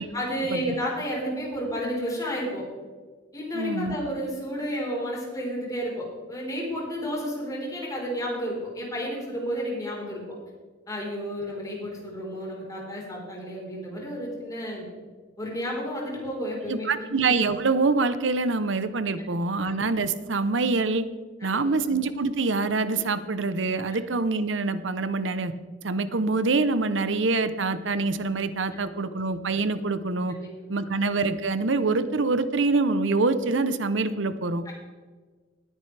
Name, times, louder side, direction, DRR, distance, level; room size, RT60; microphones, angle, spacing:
voice 1, 0.1-2.6 3.3-10.2 10.9-14.8 15.4-17.1 21.4-21.7 30.3-30.5 34.6-34.7, equal, 20° left, -3 dB, 4.3 m, -31 dB
voice 2, 3.5-3.9 16.7-21.0 21.4-25.5 25.8-30.4 30.7-34.6, right 3 dB, 75° right, 12 dB, 0.8 m, -25 dB
19.0 x 9.9 x 3.4 m, 1.4 s
head